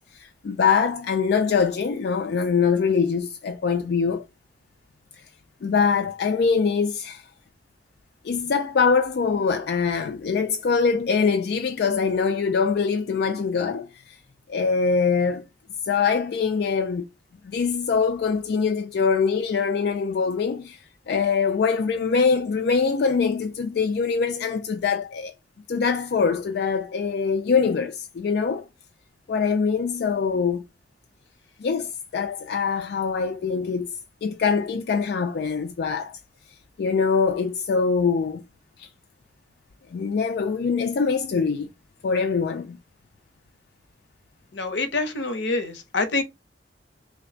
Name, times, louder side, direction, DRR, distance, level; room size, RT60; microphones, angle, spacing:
voice 1, 0.1-4.3 5.6-7.2 8.2-14.2 14.5-15.4 15.8-17.0 17.4-25.3 25.7-28.7 29.3-30.6 31.6-33.9 34.2-36.2 36.8-38.4 38.8-38.9 39.9-41.7 42.0-42.8, left 5 dB, 60° left, 0.3 m, -23 dB
voice 2, 44.5-46.2, left 3 dB, 85° left, 0.8 m, -26 dB
3.2 x 2.2 x 3.8 m
head